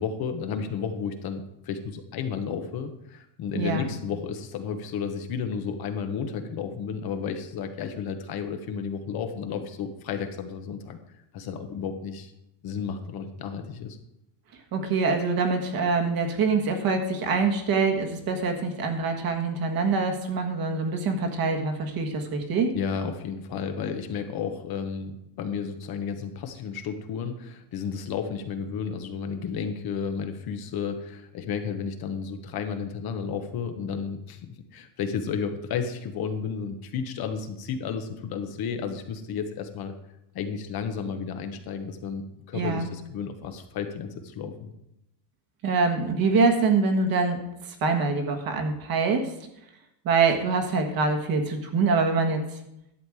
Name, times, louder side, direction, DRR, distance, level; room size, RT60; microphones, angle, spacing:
voice 1, 0.0-11.0 11.3-12.3 12.6-14.0 22.7-39.9 40.3-44.7, left 6 dB, 45° left, 7 dB, 1.1 m, -32 dB
voice 2, 3.5-3.9 14.7-22.7 42.5-42.9 45.6-47.4 47.7-49.3 50.0-52.4, right 4 dB, 45° right, 4 dB, 1.6 m, -24 dB
11.5 x 7.3 x 4.8 m, 0.84 s
cardioid pair, 145°, 49 cm